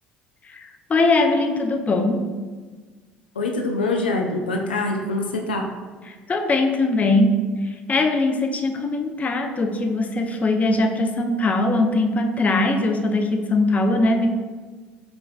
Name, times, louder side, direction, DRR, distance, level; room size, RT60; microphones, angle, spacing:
voice 1, 0.5-2.2 6.1-7.3 7.9-14.3, left 2 dB, 30° left, 4 dB, 0.5 m, -21 dB
voice 2, 3.4-5.6, left 2 dB, 85° left, 2 dB, 0.4 m, -24 dB
5.2 x 3.3 x 2.4 m, 1.4 s
figure-of-eight pair, 60°, 5 cm